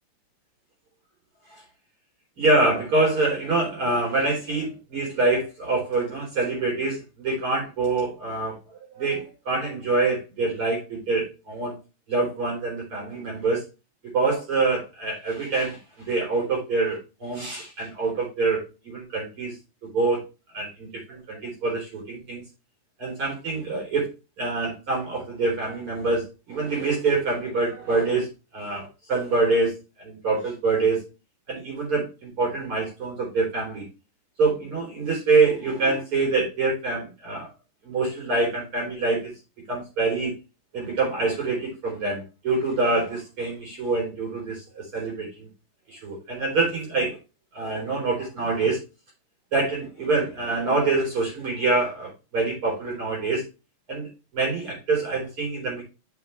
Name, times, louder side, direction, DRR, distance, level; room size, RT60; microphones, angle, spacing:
voice 1, 2.4-11.8 12.1-13.6 14.1-19.6 19.8-20.2 20.5-22.4 23.0-24.1 24.4-29.7 30.0-31.0 31.5-33.9 34.4-37.5 37.8-39.3 39.7-40.3 40.7-45.5 45.9-47.2 47.5-48.8 49.5-53.4 53.9-54.1 54.3-55.8, right 3 dB, 45° right, -2 dB, 4.7 m, -25 dB
7.4 x 7.1 x 3.5 m, 0.28 s
omnidirectional pair, 3.5 m